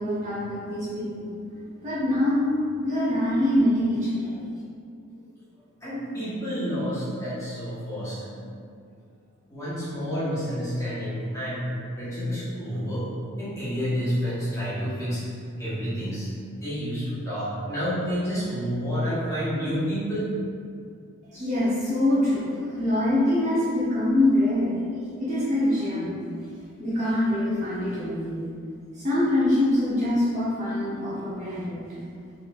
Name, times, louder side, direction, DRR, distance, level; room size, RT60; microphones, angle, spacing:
voice 1, 0.0-1.3 1.8-4.3 21.3-24.7 25.2-26.2 26.8-28.4 29.0-31.8, left 1 dB, 35° right, -10 dB, 1.0 m, -24 dB
voice 2, 5.8-8.5 9.5-11.7 11.9-13.1 13.4-15.3 15.6-16.3 16.5-20.3, equal, 15° left, -12 dB, 1.4 m, -29 dB
4.1 x 4.0 x 2.6 m, 2.3 s
head